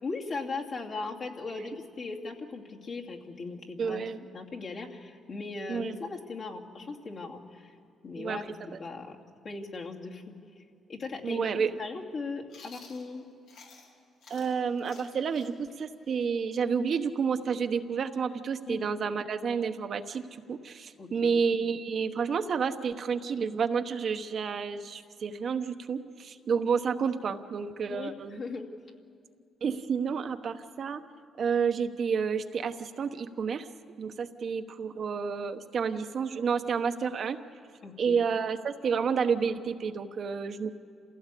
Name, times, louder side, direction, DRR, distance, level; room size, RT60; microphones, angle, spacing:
voice 1, 0.0-4.0 4.3-7.7 8.0-9.2 9.4-10.6 10.9-11.5 11.8-13.2 18.7-18.8 21.0-21.4 27.9-28.6 37.8-38.3, left 3 dB, 55° left, -1 dB, 2.6 m, -38 dB
voice 2, 3.8-4.2 5.7-6.0 8.1-8.4 8.7-8.8 11.2-11.7 14.3-28.4 29.6-31.0 31.4-33.7 34.0-37.4 38.0-40.7, right 6 dB, 55° right, 7 dB, 1.1 m, -30 dB
Chewing mastication, 12.5-13.9 14.2-17.8, left 4 dB, 85° left, 3.7 m, -53 dB
27.5 x 16.5 x 8.4 m, 2.3 s
cardioid pair, 90°, 0 cm